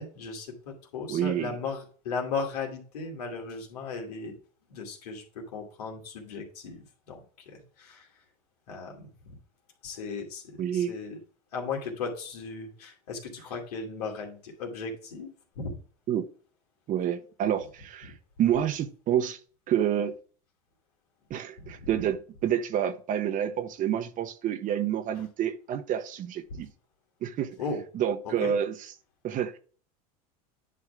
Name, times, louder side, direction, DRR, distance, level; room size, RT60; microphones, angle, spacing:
voice 1, 0.0-4.3 4.7-8.1 8.7-9.4 9.8-11.2 11.5-15.8 18.0-18.1 21.6-21.9 26.5-26.6 27.6-27.8 28.2-28.5, left 4 dB, 80° left, 2.5 m, -37 dB
voice 2, 1.1-1.5 10.6-10.9 16.1-16.3 16.9-18.1 18.4-19.4 19.7-20.1 21.3-26.7 27.2-27.6 27.9-28.7 29.2-29.6, right 10 dB, 45° right, 1.0 m, -28 dB
10.0 x 3.6 x 4.8 m
hypercardioid pair, 95°, 19 cm